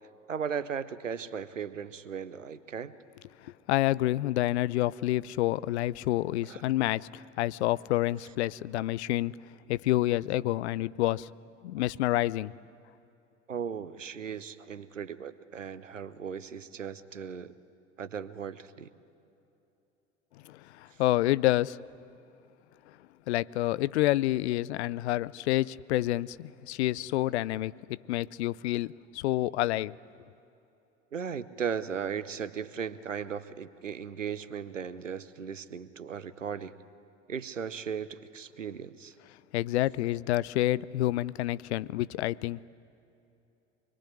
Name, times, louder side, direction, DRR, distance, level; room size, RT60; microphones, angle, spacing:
voice 1, 0.3-2.9 6.5-6.6 13.5-17.5 18.0-18.9 31.1-36.8 37.3-39.1 40.0-40.1, right 7 dB, 85° right, 0.9 m, -37 dB
voice 2, 3.4-9.3 9.7-11.3 11.6-12.5 20.4-21.8 23.3-29.9 39.5-42.6, left 16 dB, 60° left, 0.6 m, -28 dB
25.0 x 22.5 x 10.0 m
figure-of-eight pair, 70°, 37 cm